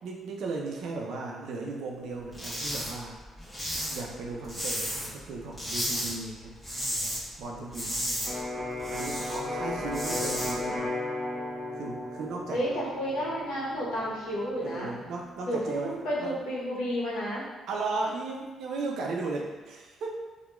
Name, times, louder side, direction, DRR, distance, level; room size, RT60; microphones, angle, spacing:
voice 1, 0.0-3.2 3.9-6.5 7.4-8.1 8.9-10.9 11.7-12.6 14.6-16.4 17.7-20.1, right 3 dB, 75° right, 0 dB, 0.4 m, -36 dB
sound 1, 2.3-2.9 3.2-5.2 5.5-6.1 6.5-7.2 7.5-9.4 9.8-10.5, equal, 5° left, 1.0 m, -33 dB
Electric guitar, 8.2-16.0, left 2 dB, 10° right, 0.5 m, -36 dB
voice 2, 12.5-14.9 15.4-17.4, equal, 85° left, -6 dB, 0.8 m, -31 dB
2.9 x 2.2 x 2.2 m, 1.3 s
cardioid pair, 90°, 0 cm